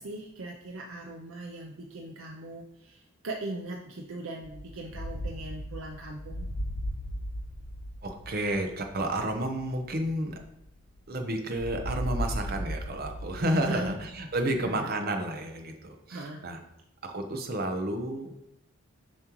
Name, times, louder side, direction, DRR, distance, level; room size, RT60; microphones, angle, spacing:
voice 1, 0.0-6.5 13.7-14.0 14.6-14.9 16.1-16.5, right 2 dB, 75° right, 1 dB, 0.6 m, -39 dB
sound 1, 4.4-11.1 11.6-14.7, equal, 70° left, 0.7 m, -37 dB
voice 2, 8.0-10.4 11.1-16.6 17.0-18.3, right 1 dB, 45° right, 5 dB, 0.8 m, -31 dB
7.3 x 5.3 x 3.0 m, 0.82 s
head